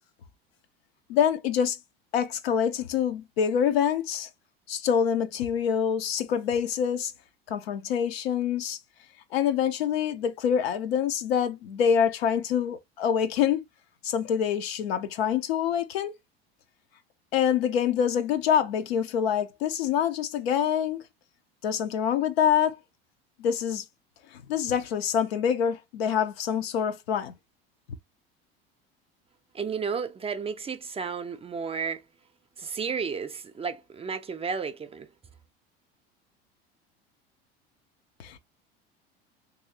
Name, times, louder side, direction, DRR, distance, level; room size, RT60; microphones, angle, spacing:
voice 1, 1.1-1.8 2.1-4.3 4.7-7.1 7.5-8.8 9.3-13.6 14.0-16.1 17.3-21.0 21.6-22.8 23.4-23.8 24.3-27.3 38.2-38.4, left 8 dB, 85° left, 0.6 m, -26 dB
voice 2, 29.5-32.0 32.6-35.1, right 6 dB, 20° right, 0.4 m, -32 dB
3.1 x 2.7 x 2.7 m
hypercardioid pair, 85°, 30 cm